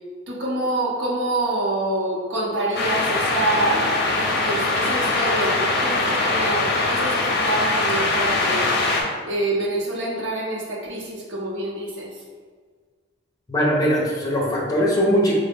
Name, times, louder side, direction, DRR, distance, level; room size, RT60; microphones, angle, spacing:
voice 1, 0.3-12.1, right 1 dB, 75° right, -3 dB, 0.8 m, -26 dB
sound 1, 2.7-9.0, left 2 dB, 55° left, 0.5 m, -22 dB
voice 2, 13.5-15.3, equal, 20° left, -4 dB, 0.7 m, -20 dB
3.9 x 2.1 x 3.4 m, 1.5 s
head